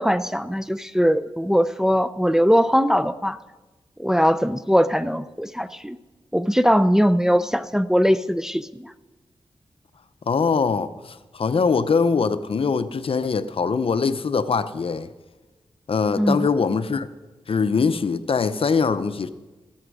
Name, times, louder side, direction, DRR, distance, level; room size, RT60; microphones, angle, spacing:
voice 1, 0.0-3.4 4.0-6.0 6.3-8.9 16.2-16.5, equal, 5° right, 12 dB, 0.5 m, -20 dB
voice 2, 10.3-15.1 15.9-17.1 17.5-19.3, left 5 dB, 60° left, 12 dB, 0.7 m, -22 dB
14.5 x 13.0 x 4.8 m, 1.1 s
cardioid pair, 70°, 11 cm